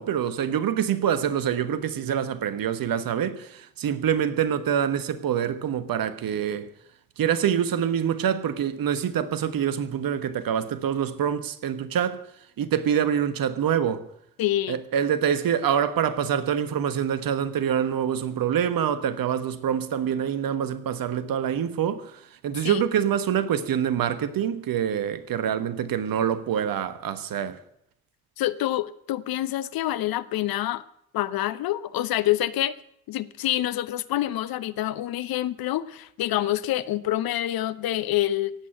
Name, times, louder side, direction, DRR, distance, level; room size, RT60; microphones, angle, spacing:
voice 1, 0.0-6.7 7.2-12.2 12.6-14.0 14.7-27.6, right 9 dB, 55° right, 1.4 m, -25 dB
voice 2, 14.4-14.8 22.6-22.8 28.4-30.8 31.1-32.7 33.1-38.5, left 13 dB, 60° left, 0.9 m, -27 dB
16.5 x 8.7 x 9.2 m
hypercardioid pair, 45°, 40 cm